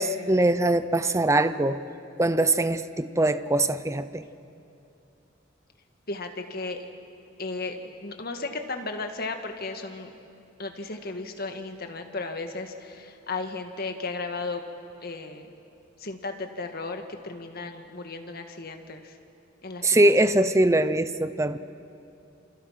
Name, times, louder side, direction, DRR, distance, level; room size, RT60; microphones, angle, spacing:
voice 1, 0.0-1.8 2.2-4.2 19.8-21.6, right 1 dB, 15° right, 12 dB, 0.7 m, -22 dB
voice 2, 6.1-6.8 7.4-10.1 10.6-14.6 15.0-15.5 16.0-19.2 19.6-20.3, left 3 dB, 50° left, 5 dB, 1.8 m, -35 dB
28.0 x 27.5 x 5.9 m, 2.7 s
head